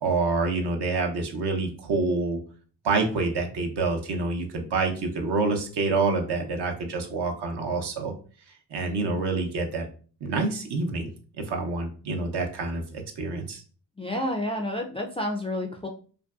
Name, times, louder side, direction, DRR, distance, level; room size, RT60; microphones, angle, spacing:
voice 1, 0.0-2.4 2.8-8.1 8.7-9.9 10.2-11.1 11.5-13.6, right 3 dB, 60° right, 3 dB, 0.7 m, -27 dB
voice 2, 14.0-15.9, left 1 dB, 15° left, 2 dB, 0.3 m, -29 dB
2.5 x 2.2 x 2.3 m, 0.40 s
supercardioid pair, 45°, 46 cm